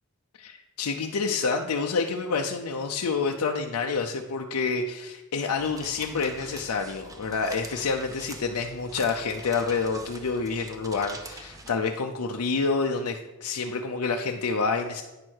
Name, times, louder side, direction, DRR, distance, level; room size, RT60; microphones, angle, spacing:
voice 1, 0.4-15.0, left 4 dB, 85° left, 3 dB, 0.5 m, -28 dB
sound 1, 5.6-11.7, right 2 dB, 15° right, 0.6 m, -44 dB
9.5 x 4.5 x 6.3 m, 1.1 s
head